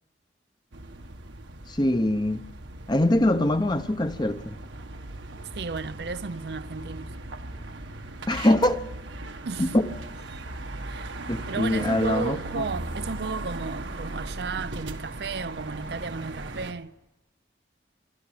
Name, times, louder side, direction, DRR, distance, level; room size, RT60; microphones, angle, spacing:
sound 1, 0.7-16.7, right 2 dB, 85° right, 1.7 m, -38 dB
voice 1, 1.7-2.4 2.9-4.6 8.3-8.8 9.6-9.9 11.3-12.6, left 1 dB, 25° left, 0.9 m, -23 dB
voice 2, 5.5-7.1 9.5-9.8 10.8-16.9, right 4 dB, 60° right, 0.6 m, -34 dB
25.5 x 12.0 x 8.9 m
head